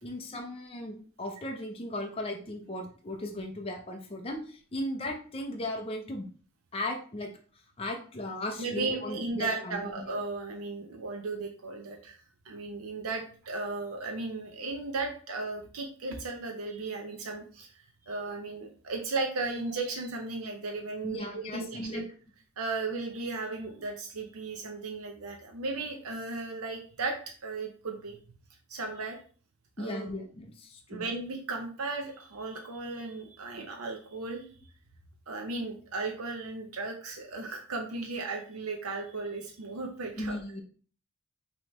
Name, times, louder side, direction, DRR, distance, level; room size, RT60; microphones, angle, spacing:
voice 1, 0.0-6.3 6.7-7.3 7.8-10.1 21.0-22.0 29.8-31.0 40.2-40.6, left 1 dB, 25° left, 1 dB, 0.7 m, -37 dB
voice 2, 8.6-12.2 12.4-22.0 22.6-27.2 27.4-28.2 28.7-29.2 29.8-30.1 30.9-34.4 35.3-40.4, right 3 dB, 85° right, 3 dB, 0.7 m, -35 dB
5.5 x 3.0 x 3.1 m, 0.41 s
head